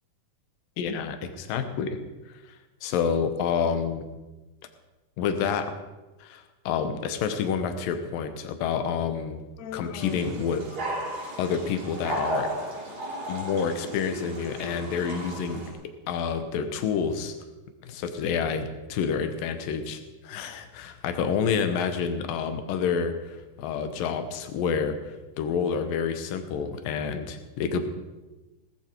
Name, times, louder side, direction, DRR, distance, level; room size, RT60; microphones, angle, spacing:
voice 1, 0.8-2.0 2.5-2.6 2.8-4.1 5.2-5.7 6.2-9.4 9.7-10.6 11.4-12.5 13.3-15.6 16.1-17.4 17.9-27.9, left 6 dB, 85° left, 8 dB, 2.8 m, -28 dB
Human voice, 9.6-11.3, left 9 dB, 70° left, 1.7 m, -41 dB
sound 1, 10.0-15.7, right 1 dB, 85° right, 6.4 m, -35 dB
18.5 x 14.0 x 4.6 m, 1.1 s
omnidirectional pair, 3.9 m